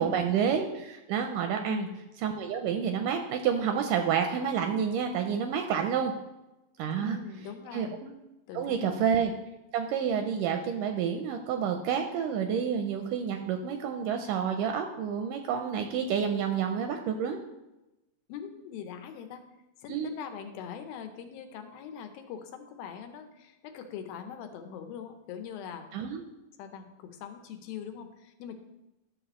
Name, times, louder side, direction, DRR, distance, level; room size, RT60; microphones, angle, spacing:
voice 1, 0.0-1.9 2.2-6.1 6.8-7.2 7.7-8.1 8.5-9.3 9.7-17.4 19.9-20.1 25.9-26.2, right 7 dB, 80° right, 5 dB, 2.0 m, -29 dB
voice 2, 1.7-2.0 7.0-8.0 8.5-9.0 18.3-19.4 19.8-25.9 26.6-28.5, left 8 dB, 90° left, 6 dB, 2.6 m, -42 dB
11.5 x 6.7 x 3.0 m, 0.96 s
omnidirectional pair, 4.1 m